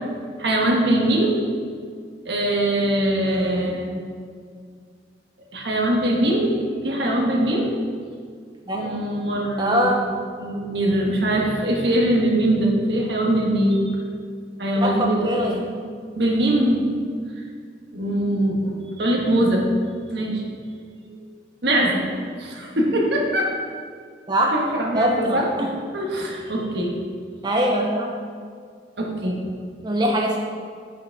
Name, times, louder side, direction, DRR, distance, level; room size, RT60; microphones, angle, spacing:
voice 1, 0.4-1.4 2.2-4.0 5.5-6.6 6.8-7.7 8.7-9.9 10.4-14.0 14.6-15.7 16.1-16.9 17.9-19.7 20.1-20.4 21.1-21.2 21.6-22.0 22.4-23.5 24.5-25.5 25.9-27.0 29.0-29.4, right 1 dB, 70° right, -1 dB, 1.3 m, -22 dB
voice 2, 3.2-3.8 8.7-9.0 9.6-10.1 14.8-15.7 24.3-24.6 24.9-25.7 27.4-28.2 29.8-30.4, right 1 dB, 25° right, 1 dB, 0.5 m, -23 dB
7.7 x 5.9 x 4.6 m, 2.1 s
head